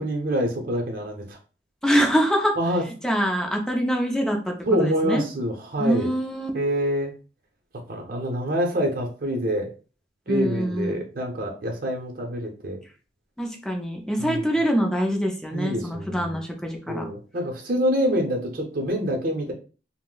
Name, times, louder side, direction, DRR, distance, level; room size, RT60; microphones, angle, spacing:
voice 1, 0.0-1.4 2.6-2.8 4.7-6.1 6.5-7.1 7.9-9.7 10.3-12.8 14.2-14.5 15.5-16.4 16.9-19.5, equal, 55° right, 2 dB, 0.7 m, -26 dB
voice 2, 1.8-2.5 3.0-5.2 5.8-6.5 10.3-11.0 13.4-17.1, equal, 5° left, 2 dB, 0.4 m, -24 dB
2.6 x 2.0 x 3.7 m, 0.36 s
head